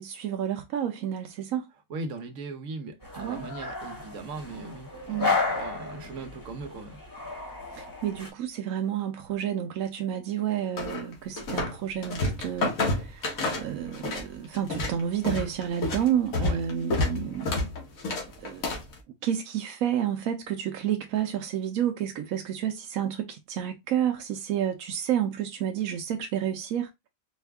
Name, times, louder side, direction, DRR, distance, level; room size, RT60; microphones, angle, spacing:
voice 1, 0.0-1.7 3.2-3.4 5.1-5.4 7.7-12.7 13.0-13.3 13.6-17.5 18.4-18.7 19.2-26.9, right 10 dB, 90° right, 1.1 m, -30 dB
voice 2, 1.9-7.0 16.5-16.6, right 3 dB, 70° right, 1.2 m, -39 dB
sound 1, 3.0-8.3, left 4 dB, 15° left, 1.0 m, -33 dB
sound 2, 10.8-11.8 12.0-14.3 14.5-18.9, left 2 dB, 85° left, 1.6 m, -29 dB
4.4 x 2.4 x 3.4 m
omnidirectional pair, 1.4 m